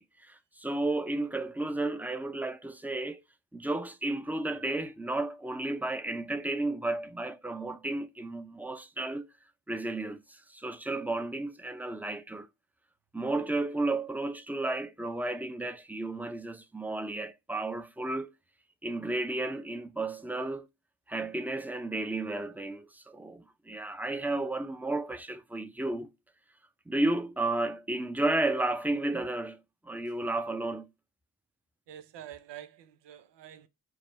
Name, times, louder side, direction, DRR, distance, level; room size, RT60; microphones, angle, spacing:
voice 1, 0.0-3.2 3.5-9.3 9.7-12.5 13.1-18.3 18.8-20.7 21.1-26.1 26.9-29.6 29.8-30.9, right 2 dB, 5° right, 0.6 m, -33 dB
voice 2, 31.9-33.7, right 11 dB, 85° right, 0.6 m, -47 dB
4.8 x 2.1 x 4.3 m
supercardioid pair, 50°, 41 cm